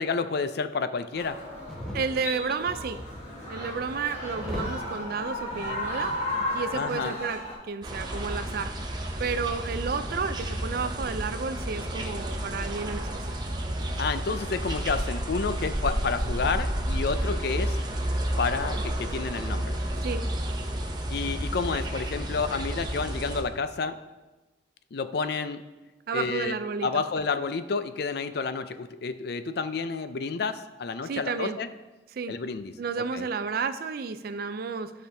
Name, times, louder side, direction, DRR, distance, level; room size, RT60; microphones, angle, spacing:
voice 1, 0.0-1.4 6.7-7.2 14.0-17.8 18.4-19.8 21.1-24.0 24.9-25.6 26.1-26.5 26.8-31.7 32.3-32.7 33.1-33.3, left 4 dB, 60° left, 11 dB, 0.5 m, -30 dB
sound 1, 1.1-7.5, left 1 dB, 40° left, 2.8 m, -34 dB
sound 2, 1.6-2.0 2.7-4.8 5.5-6.3 6.5-6.7, equal, 5° left, 1.2 m, -39 dB
voice 2, 1.9-3.0 3.5-6.2 6.5-8.7 9.2-13.1 20.0-20.2 26.1-27.0 31.0-31.6 32.1-32.4 32.8-34.9, right 5 dB, 55° right, 11 dB, 0.4 m, -31 dB
sound 3, 7.8-23.4, right 1 dB, 25° right, 0.8 m, -31 dB
12.5 x 5.0 x 3.4 m, 1.1 s
head